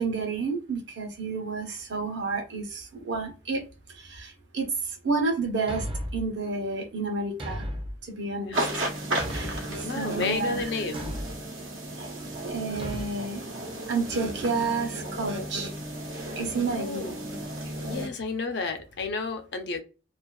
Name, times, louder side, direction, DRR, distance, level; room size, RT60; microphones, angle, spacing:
voice 1, 0.0-3.6 4.0-4.7 5.0-5.8 6.1-7.6 8.2-8.9 9.3-11.0 12.5-13.4 13.9-15.7 16.4-17.1, right 4 dB, 60° right, 0.7 m, -30 dB
Thump thud, 5.7-6.3 7.4-8.0 9.2-9.7 10.9-11.4 12.8-13.1, equal, 25° right, 0.5 m, -34 dB
sound 1, 8.5-18.1, right 1 dB, 90° right, 0.9 m, -34 dB
voice 2, 9.8-11.2 16.7-17.1 17.8-19.8, left 4 dB, 60° left, 0.5 m, -31 dB
2.5 x 2.3 x 2.2 m
head